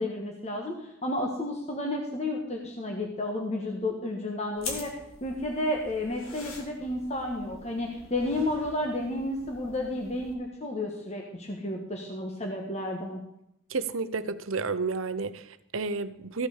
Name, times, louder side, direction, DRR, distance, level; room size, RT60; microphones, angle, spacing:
voice 1, 0.0-13.2, left 1 dB, 30° left, 1.4 m, -32 dB
sound 1, 4.6-10.3, left 3 dB, 90° left, 2.5 m, -44 dB
voice 2, 13.7-16.5, right 4 dB, 80° right, 0.8 m, -31 dB
15.0 x 6.1 x 6.5 m
head